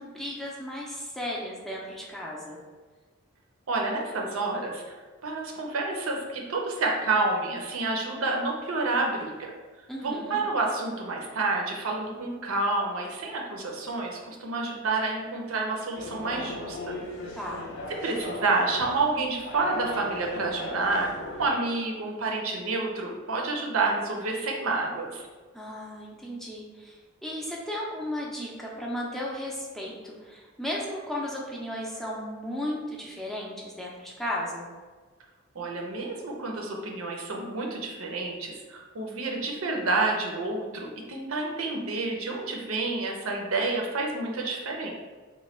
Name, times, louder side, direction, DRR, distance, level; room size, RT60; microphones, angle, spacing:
voice 1, 0.0-2.6 9.9-10.4 17.4-17.7 25.5-34.7, left 1 dB, ahead, -4 dB, 0.4 m, -35 dB
voice 2, 3.7-9.5 10.0-17.0 18.0-25.3 35.5-44.9, right 3 dB, 85° right, 0 dB, 0.6 m, -29 dB
sound 1, 16.0-21.5, left 1 dB, 60° left, 0.6 m, -38 dB
3.0 x 2.2 x 4.1 m, 1.4 s
head